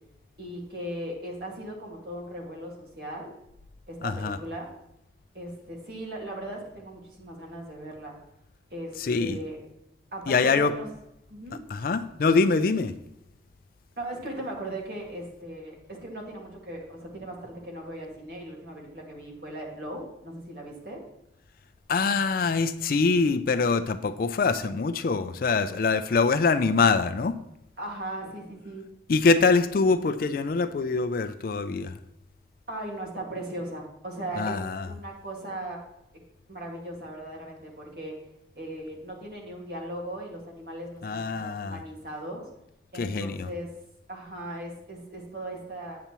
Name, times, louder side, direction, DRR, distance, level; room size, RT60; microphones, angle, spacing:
voice 1, 0.4-3.3 3.9-4.7 5.3-8.2 8.7-9.6 10.1-10.9 11.3-11.6 14.0-21.0 27.8-28.9 32.7-35.8 36.5-38.1 38.6-42.4 42.9-43.7 44.1-46.0, right 1 dB, 55° right, -1 dB, 1.9 m, -38 dB
voice 2, 4.0-4.4 9.0-9.4 10.3-10.7 11.7-12.9 21.9-27.4 29.1-32.0 34.4-34.9 41.0-41.8 42.9-43.5, left 4 dB, 50° left, 11 dB, 0.4 m, -24 dB
8.5 x 6.7 x 3.0 m, 0.84 s
head